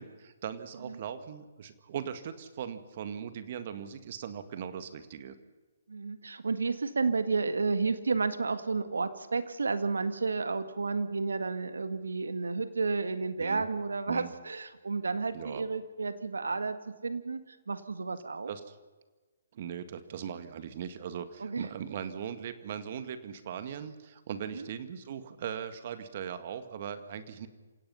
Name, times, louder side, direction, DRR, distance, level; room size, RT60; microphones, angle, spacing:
voice 1, 0.0-5.4 13.4-13.7 14.1-14.3 15.3-15.6 18.5-18.7 19.5-27.5, right 8 dB, 45° right, 11 dB, 2.0 m, -39 dB
voice 2, 5.9-18.5 21.4-21.7 24.5-24.7, right 4 dB, 85° right, 11 dB, 1.9 m, -31 dB
27.5 x 17.0 x 5.7 m, 1.3 s
hypercardioid pair, 145°, 0 cm